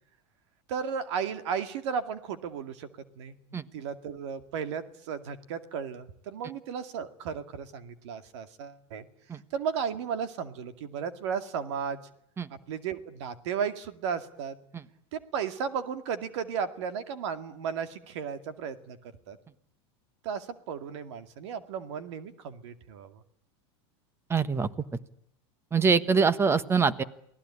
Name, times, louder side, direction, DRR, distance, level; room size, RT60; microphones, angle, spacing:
voice 1, 0.7-2.9 3.2-9.1 9.3-12.1 12.5-14.6 15.1-19.0 19.3-19.4 20.2-23.2, right 7 dB, 75° right, 10 dB, 2.3 m, -34 dB
voice 2, 24.3-24.7 25.7-27.0, right 5 dB, 15° right, 15 dB, 1.3 m, -24 dB
28.5 x 18.5 x 9.9 m, 0.71 s
supercardioid pair, 135°, 15 cm